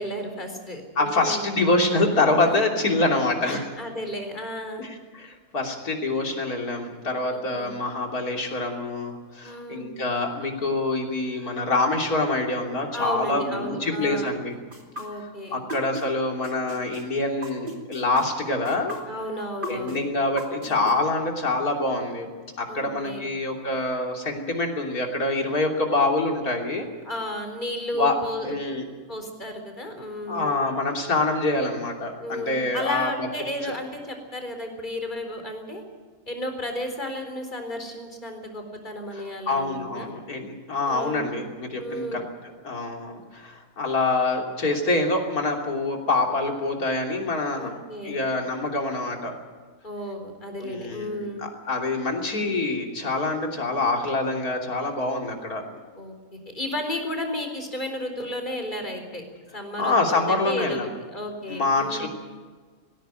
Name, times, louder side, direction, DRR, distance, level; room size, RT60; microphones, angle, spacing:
voice 1, 0.0-1.4 2.5-2.6 3.4-4.9 7.3-7.8 9.4-9.9 12.9-14.3 15.0-15.6 19.1-20.0 22.7-23.3 27.0-28.5 29.1-30.6 32.2-35.8 36.3-40.1 40.9-41.4 41.8-42.2 47.5-48.2 49.8-51.4 56.0-59.2 59.5-62.1, left 1 dB, 30° left, 4 dB, 4.2 m, -33 dB
voice 2, 1.0-3.8 4.8-14.5 15.2-19.0 19.7-22.3 22.6-26.9 27.9-28.1 28.4-28.8 30.3-33.3 33.6-33.7 39.1-47.7 48.0-49.3 50.6-55.6 59.8-60.9 61.5-62.1, left 2 dB, 85° left, 2 dB, 3.6 m, -26 dB
sound 1, 14.7-16.1 16.4-20.9, right 1 dB, 35° right, 3.1 m, -36 dB
19.5 x 16.5 x 9.1 m, 1.5 s
omnidirectional pair, 1.5 m